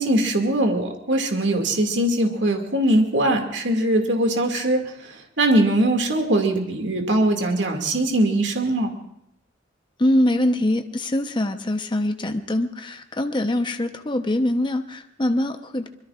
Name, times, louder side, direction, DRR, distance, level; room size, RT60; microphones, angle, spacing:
voice 1, 0.0-4.8 5.4-8.9, right 1 dB, 70° right, 3 dB, 2.3 m, -21 dB
voice 2, 10.0-15.9, left 1 dB, 25° left, 6 dB, 0.9 m, -23 dB
25.0 x 22.0 x 2.5 m, 0.77 s
head